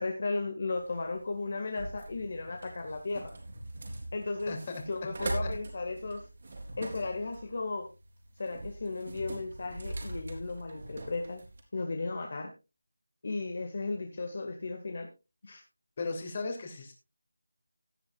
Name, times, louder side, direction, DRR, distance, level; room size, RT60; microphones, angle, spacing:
voice 1, 0.0-3.3 4.1-4.5 4.9-6.2 6.8-7.9 8.4-11.4 11.7-12.5 13.2-15.1 15.4-15.6, left 3 dB, 45° left, 4 dB, 1.9 m, -35 dB
sound 1, 0.7-11.6, right 2 dB, 45° right, 3.9 m, -42 dB
voice 2, 4.5-5.5 16.0-16.9, left 3 dB, 30° left, 4 dB, 2.9 m, -37 dB
17.0 x 9.8 x 2.4 m, 0.27 s
figure-of-eight pair, 170°, 0 cm